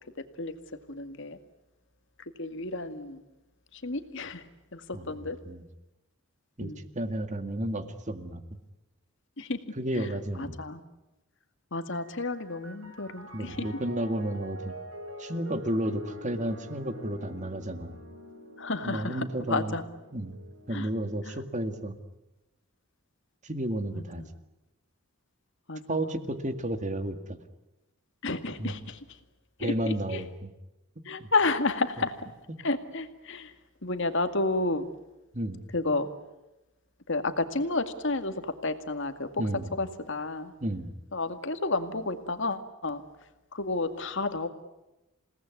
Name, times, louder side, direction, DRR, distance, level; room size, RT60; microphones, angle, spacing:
voice 1, 0.9-1.4 2.4-3.2 3.7-5.4 6.6-6.8 9.4-9.6 9.9-10.8 11.7-13.7 18.6-19.8 20.7-20.9 21.2-21.4 23.9-24.3 25.7-26.0 28.2-29.0 29.6-30.2 31.1-32.3 32.6-33.5 33.8-34.9 35.7-36.1 37.1-39.4 39.7-40.5 41.1-43.0 43.5-44.5, left 3 dB, 60° left, 8 dB, 2.1 m, -31 dB
voice 2, 4.9-5.6 6.6-8.4 9.8-10.6 13.3-14.7 15.2-18.0 18.8-19.7 20.1-20.4 20.7-22.0 23.4-24.2 25.9-27.4 28.6-28.7 29.6-30.5 31.2-31.3 32.5-32.6 35.3-35.6 39.4-39.7 40.6-40.9, right 1 dB, 35° right, 9 dB, 2.0 m, -32 dB
Piano, 11.8-21.4, equal, 75° right, 5.1 m, -46 dB
28.5 x 18.5 x 9.6 m, 0.99 s
head